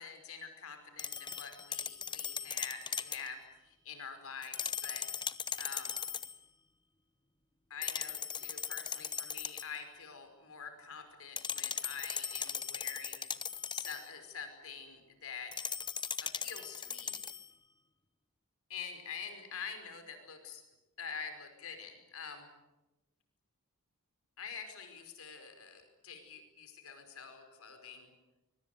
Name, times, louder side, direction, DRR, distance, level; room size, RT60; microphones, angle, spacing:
voice 1, 0.0-5.1 5.6-6.0 7.7-13.3 13.7-15.6 16.2-17.1 18.7-20.6 21.0-22.5 24.4-28.1, left 6 dB, 70° left, 7 dB, 5.2 m, -46 dB
sound 1, 1.0-3.3 4.4-6.4 7.8-9.8 11.4-14.1 15.5-17.5, left 7 dB, 20° left, 0.9 m, -39 dB
25.0 x 24.0 x 9.4 m, 1.0 s
head